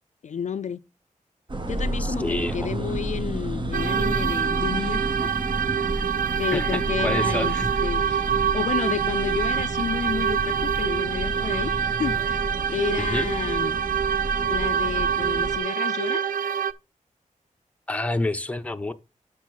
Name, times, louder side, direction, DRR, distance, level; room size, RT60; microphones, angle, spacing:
voice 1, 0.2-0.8 1.7-5.3 6.4-7.5 7.8-8.2 8.5-11.7 12.0-12.4 12.7-13.8 14.5-16.2, left 7 dB, 60° left, 0.4 m, -30 dB
sound 1, 1.5-15.6, right 1 dB, 35° right, 1.0 m, -31 dB
voice 2, 2.0-2.7 6.5-7.7 13.0-13.3 17.9-18.9, left 2 dB, 10° left, 0.7 m, -28 dB
sound 2, 3.7-16.7, right 8 dB, 85° right, 0.4 m, -26 dB
7.2 x 6.9 x 4.0 m
wide cardioid pair, 90°, 14 cm